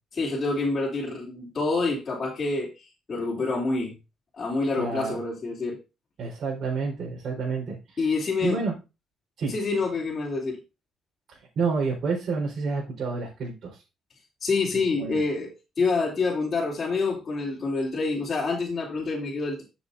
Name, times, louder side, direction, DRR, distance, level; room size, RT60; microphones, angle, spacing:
voice 1, 0.1-3.9 4.3-5.8 8.0-8.6 9.5-10.6 14.4-19.6, left 3 dB, 30° left, -6 dB, 3.2 m, -27 dB
voice 2, 4.8-5.2 6.2-8.7 9.4-9.5 11.3-13.8 14.9-15.2, right 4 dB, 55° right, -5 dB, 4.5 m, -29 dB
13.0 x 7.4 x 2.8 m, 0.28 s
cardioid pair, 120°, 0 cm